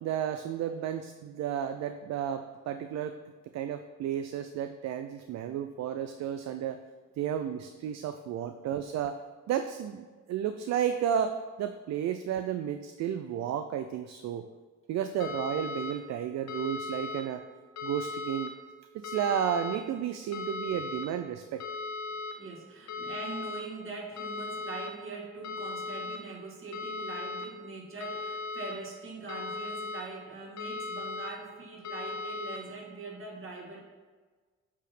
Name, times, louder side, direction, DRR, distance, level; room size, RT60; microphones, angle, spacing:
voice 1, 0.0-3.2 3.5-6.8 7.2-9.2 9.5-14.4 14.9-17.4 17.8-18.5 18.9-21.6, right 9 dB, 60° right, 8 dB, 0.4 m, -32 dB
sound 1, 15.2-15.9 16.5-17.2 17.8-18.5 19.0-19.8 20.3-21.0 21.6-22.3 22.9-23.6 24.2-24.9 25.4-26.2 26.7-27.5 28.0-28.7 29.3-30.0 30.6-31.3 31.8-32.6, left 3 dB, 65° left, 0.9 m, -37 dB
voice 2, 22.3-33.8, right 3 dB, 45° right, -3 dB, 2.0 m, -42 dB
8.4 x 2.8 x 5.9 m, 1.4 s
cardioid pair, 90°, 30 cm